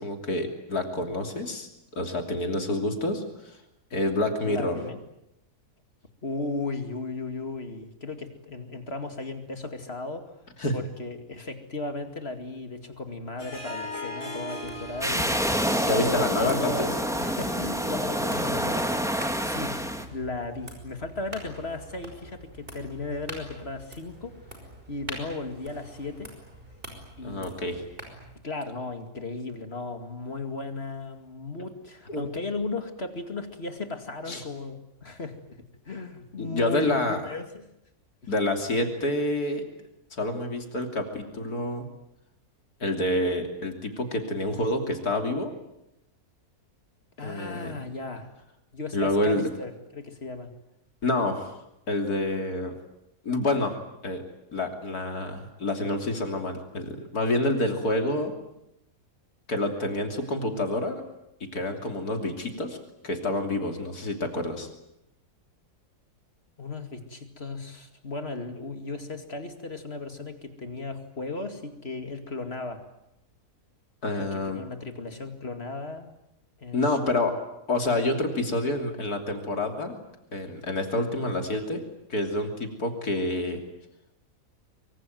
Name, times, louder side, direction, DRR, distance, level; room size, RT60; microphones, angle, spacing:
voice 1, 0.0-1.7 1.9-3.6 3.9-4.8 10.6-10.8 15.9-16.9 27.2-27.8 32.1-32.2 34.3-34.4 36.4-37.2 38.3-39.6 40.1-41.9 42.8-45.5 47.2-47.8 48.9-49.5 51.0-51.5 51.9-52.7 53.2-53.7 54.0-54.2 54.5-58.3 59.5-61.0 61.4-62.8 63.0-64.7 74.0-74.6 76.7-77.3 77.7-80.0 80.3-81.8 82.1-83.6, left 1 dB, 75° left, 4 dB, 3.6 m, -28 dB
voice 2, 4.5-5.0 6.2-10.3 10.7-15.4 15.9-16.9 17.2-19.8 20.1-24.6 24.9-26.3 27.2-27.6 28.4-37.7 38.2-38.3 47.2-48.3 48.7-50.5 66.6-72.8 74.2-76.1 76.6-77.3, left 3 dB, 40° left, 7 dB, 2.5 m, -36 dB
Harp, 13.4-18.9, equal, 20° left, 5.4 m, -39 dB
sound 1, 14.6-28.4, right 1 dB, 35° right, 5.6 m, -45 dB
sound 2, 15.0-20.1, equal, ahead, 1.7 m, -27 dB
24.0 x 24.0 x 9.3 m, 0.84 s
omnidirectional pair, 1.6 m